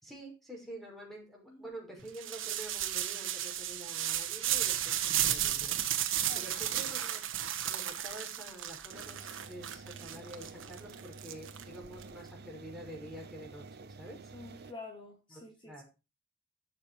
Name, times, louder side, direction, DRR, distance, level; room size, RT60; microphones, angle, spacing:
voice 1, 0.0-7.3 7.6-14.3 15.3-15.8, right 1 dB, ahead, 5.5 m, -48 dB
sound 1, 2.1-12.0, right 11 dB, 80° right, 1.4 m, -34 dB
sound 2, 8.9-14.7, right 3 dB, 55° right, 0.7 m, -50 dB
voice 2, 14.3-15.8, left 3 dB, 25° left, 2.8 m, -48 dB
12.0 x 7.4 x 4.7 m
head